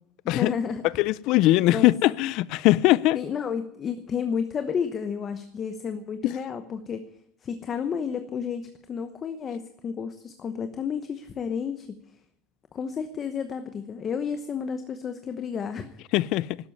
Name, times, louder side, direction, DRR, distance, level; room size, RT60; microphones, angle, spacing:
voice 1, 0.2-0.8 1.7-1.9 3.1-7.0 7.4-12.0 12.7-15.9, left 6 dB, 25° left, 1.0 m, -31 dB
voice 2, 1.0-3.2 6.2-6.3 16.1-16.5, left 17 dB, 55° left, 0.5 m, -21 dB
12.5 x 10.5 x 9.7 m
cardioid pair, 165°, 0 cm